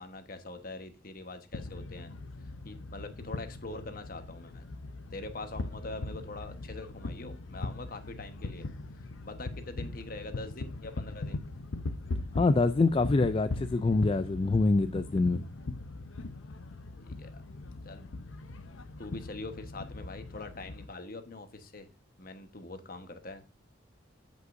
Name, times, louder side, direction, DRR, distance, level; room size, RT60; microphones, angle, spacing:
voice 1, 0.0-2.1 2.4-4.7 5.1-8.7 9.0-11.4 17.0-17.4 17.8-18.0 19.0-21.9 22.2-23.4, left 2 dB, 45° left, 1.2 m, -43 dB
sound 1, 1.5-20.9, left 2 dB, 85° left, 0.7 m, -40 dB
voice 2, 12.3-15.4, left 3 dB, 30° left, 0.3 m, -25 dB
14.5 x 5.4 x 2.6 m
head